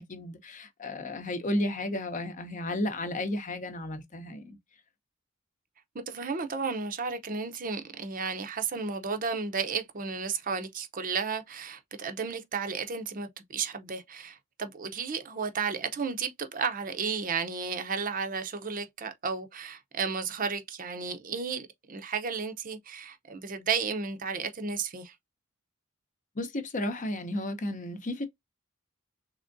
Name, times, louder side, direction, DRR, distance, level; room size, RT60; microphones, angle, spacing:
voice 1, 0.0-4.6 26.4-28.2, left 1 dB, 40° left, 0.7 m, -33 dB
voice 2, 6.1-25.1, right 5 dB, 40° right, 0.6 m, -33 dB
3.6 x 3.4 x 2.5 m
head